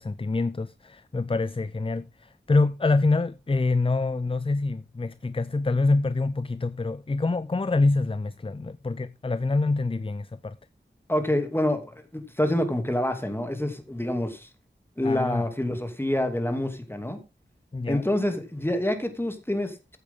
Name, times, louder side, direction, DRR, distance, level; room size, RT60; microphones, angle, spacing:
voice 1, 0.0-10.6 15.0-15.5 17.7-18.1, left 3 dB, 30° left, 0.5 m, -26 dB
voice 2, 11.1-14.5 15.0-17.2 17.9-20.0, left 1 dB, 10° left, 2.7 m, -27 dB
15.0 x 8.5 x 3.7 m
wide cardioid pair, 60°, 19 cm